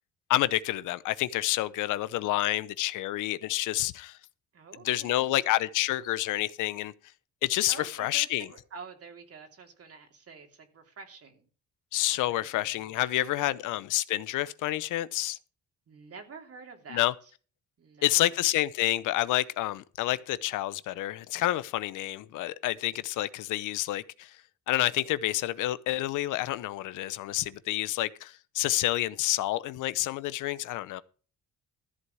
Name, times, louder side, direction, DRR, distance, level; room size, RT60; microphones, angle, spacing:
voice 1, 0.3-4.2 4.8-6.9 7.4-8.5 11.9-15.4 16.9-17.1 18.0-24.4 24.7-31.0, left 15 dB, 85° left, 0.7 m, -29 dB
voice 2, 4.5-5.5 7.7-11.5 12.2-13.8 15.9-17.3 17.8-18.4, right 4 dB, 50° right, 2.9 m, -48 dB
14.0 x 4.8 x 8.3 m
cardioid pair, 90°, 30 cm